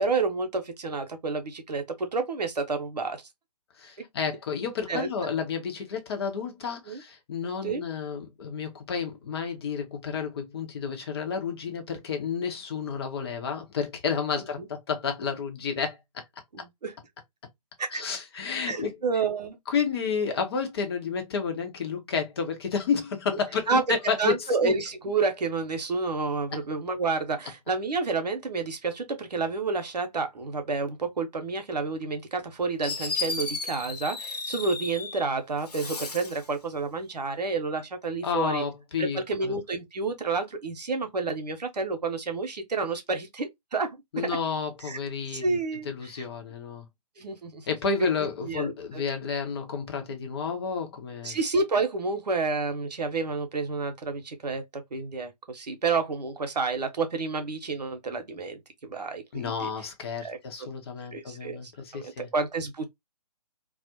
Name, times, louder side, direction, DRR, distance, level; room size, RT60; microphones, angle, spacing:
voice 1, 0.0-3.2 4.9-5.1 6.9-7.0 7.6-7.8 14.6-14.7 16.5-16.9 17.8-18.1 18.7-19.6 23.7-38.6 39.0-44.3 44.8-45.0 45.3-46.2 47.2-47.7 48.0-48.1 48.4-49.0 51.2-59.7 60.2-60.7 61.1-62.9, right 4 dB, 80° right, 0.8 m, -30 dB
voice 2, 3.8-16.0 17.9-18.9 19.7-24.3 24.6-24.7 38.2-39.6 44.1-45.6 45.8-46.9 47.7-51.4 59.3-62.3, left 6 dB, 40° left, 0.7 m, -31 dB
Fireworks, 32.4-32.5 32.8-35.3 35.6-36.5, left 3 dB, 75° left, 0.8 m, -34 dB
2.4 x 2.0 x 2.8 m
figure-of-eight pair, 140°, 21 cm